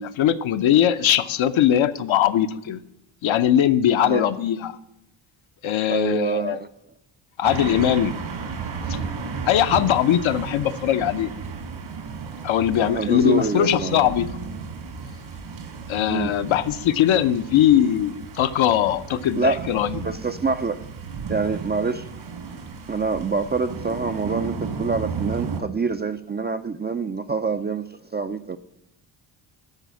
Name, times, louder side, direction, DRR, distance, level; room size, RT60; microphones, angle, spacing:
voice 1, 0.0-2.8 3.2-4.8 5.6-6.6 7.4-8.1 8.9-9.0 9.5-11.3 12.4-14.3 15.9-20.2, left 10 dB, 70° left, 0.7 m, -20 dB
voice 2, 5.9-6.7 12.8-14.1 16.1-16.3 19.4-19.7 20.0-20.8 21.3-22.1 22.9-28.6, right 4 dB, 25° right, 0.3 m, -26 dB
sound 1, 7.4-25.6, right 5 dB, 65° right, 1.8 m, -34 dB
12.5 x 4.1 x 8.2 m
cardioid pair, 75°, 49 cm